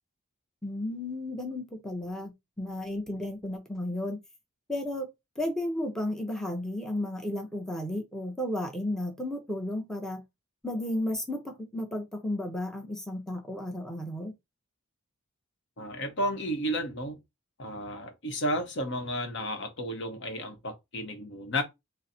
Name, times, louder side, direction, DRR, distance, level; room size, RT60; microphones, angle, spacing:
voice 1, 0.6-4.2 4.7-5.1 5.4-10.2 10.6-14.3, left 1 dB, ahead, 0.7 m, -33 dB
voice 2, 15.8-17.2 17.6-21.6, equal, 55° left, 0.9 m, -32 dB
3.9 x 2.0 x 4.2 m
head